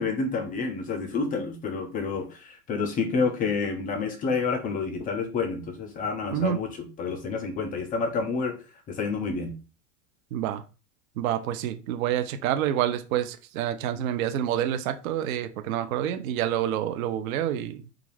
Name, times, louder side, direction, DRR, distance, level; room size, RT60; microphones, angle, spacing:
voice 1, 0.0-8.6 8.9-9.5, left 4 dB, 20° left, 0.3 m, -29 dB
voice 2, 10.3-10.6 11.2-17.8, right 11 dB, 70° right, 0.5 m, -28 dB
2.4 x 2.4 x 3.1 m
hypercardioid pair, 100°, 43 cm